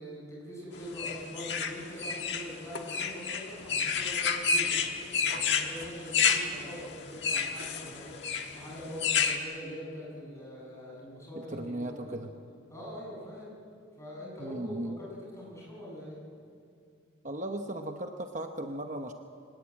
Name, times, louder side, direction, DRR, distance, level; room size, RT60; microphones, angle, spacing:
voice 1, 0.0-12.2 12.7-13.6 14.0-16.2, equal, 15° left, -5 dB, 7.9 m, -43 dB
sound 1, 1.0-9.4, left 6 dB, 60° left, 1.6 m, -29 dB
voice 2, 11.4-12.3 14.4-15.0 17.2-19.1, right 1 dB, 40° right, 5 dB, 0.9 m, -36 dB
23.0 x 19.5 x 8.8 m, 2.4 s
head